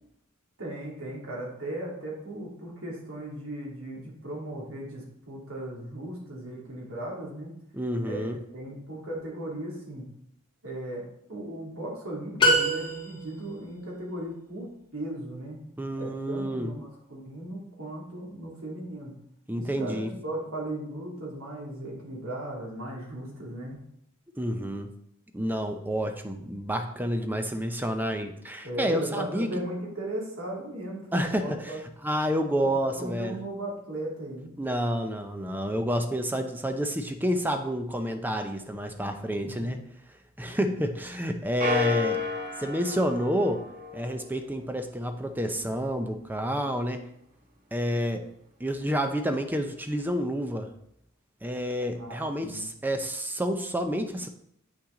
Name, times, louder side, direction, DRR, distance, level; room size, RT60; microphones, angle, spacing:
voice 1, 0.6-7.5 8.0-10.1 10.6-15.6 16.0-19.2 19.6-23.8 28.6-31.8 32.6-34.5 39.4-39.8 52.0-52.6, right 1 dB, 70° right, -3 dB, 2.6 m, -37 dB
voice 2, 7.7-8.4 15.8-16.7 19.5-20.1 24.4-24.9 25.3-29.5 31.1-31.7 32.0-33.4 34.6-39.8 40.4-42.2 42.6-43.6 43.9-47.0 47.7-48.2 48.6-50.7 51.4-54.3, equal, 10° right, 6 dB, 0.6 m, -29 dB
sound 1, 12.4-13.5, equal, 20° left, 1.8 m, -24 dB
sound 2, 41.6-44.3, left 4 dB, 35° right, 1.4 m, -31 dB
8.4 x 5.8 x 3.8 m, 0.74 s
head